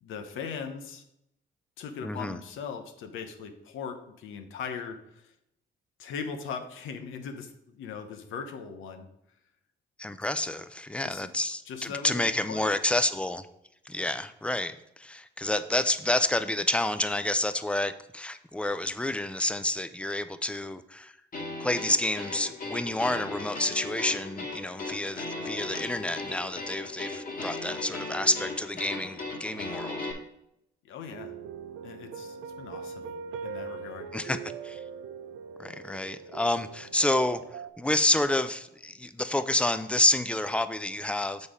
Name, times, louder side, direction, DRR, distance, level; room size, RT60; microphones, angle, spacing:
voice 1, 0.0-1.0 1.8-5.0 6.0-9.1 11.0-11.2 11.7-12.7 30.8-31.3 31.8-33.0 33.4-34.1, left 6 dB, 85° left, 5 dB, 0.9 m, -39 dB
voice 2, 2.0-2.4 10.0-13.5 13.9-21.1 21.6-30.1 34.1-34.8 35.6-37.4 37.8-41.5, left 1 dB, 5° left, 11 dB, 0.4 m, -29 dB
sound 1, 21.3-30.1, left 2 dB, 45° left, 1.7 m, -37 dB
sound 2, 31.1-37.7, right 5 dB, 85° right, 0.5 m, -41 dB
6.9 x 4.2 x 5.0 m, 0.79 s
cardioid pair, 90°, 20 cm